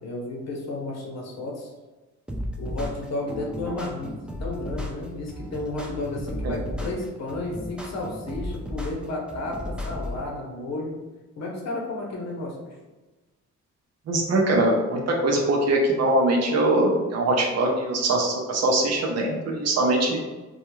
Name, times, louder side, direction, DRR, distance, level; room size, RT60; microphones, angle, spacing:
voice 1, 0.0-1.7 2.6-11.0 11.4-12.7, left 2 dB, 60° left, -1 dB, 0.8 m, -32 dB
sound 1, 2.3-10.3, left 1 dB, 5° right, 0.3 m, -34 dB
voice 2, 14.1-20.2, right 2 dB, 55° right, 0 dB, 0.7 m, -22 dB
2.3 x 2.2 x 3.0 m, 1.2 s
cardioid pair, 90°, 30 cm